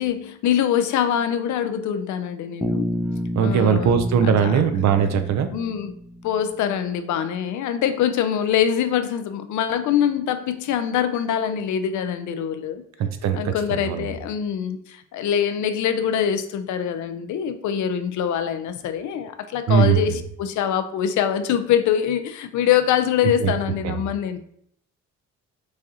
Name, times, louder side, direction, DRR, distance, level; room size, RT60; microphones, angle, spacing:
voice 1, 0.0-2.9 3.4-4.6 5.5-5.9 6.2-12.8 13.3-24.4, left 9 dB, 70° left, 10 dB, 0.5 m, -24 dB
Bass guitar, 2.6-6.7, equal, 5° right, 0.4 m, -30 dB
voice 2, 3.3-5.5 13.0-14.1 19.7-20.2 23.4-23.5 23.8-23.9, right 7 dB, 65° right, 8 dB, 0.6 m, -20 dB
6.3 x 2.4 x 2.8 m, 0.68 s
cardioid pair, 90°, 30 cm